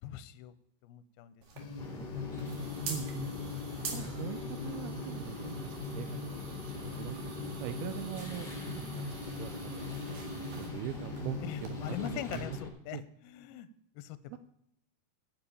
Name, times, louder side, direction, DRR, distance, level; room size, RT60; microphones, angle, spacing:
voice 1, 0.0-0.5 0.8-1.4 8.2-8.4 11.4-13.7 14.0-14.4, left 11 dB, 80° left, 14 dB, 2.4 m, -42 dB
sound 1, 1.4-12.4, right 4 dB, 60° right, 3.2 m, -47 dB
sound 2, 1.6-12.5, left 4 dB, 65° left, 1.9 m, -41 dB
sound 3, 1.8-12.7, left 2 dB, 20° left, 1.3 m, -44 dB
voice 2, 2.9-3.3 3.9-12.6 12.9-13.0 14.3-14.4, right 12 dB, 80° right, 10 dB, 2.4 m, -42 dB
10.0 x 7.8 x 8.5 m, 0.74 s
omnidirectional pair, 4.6 m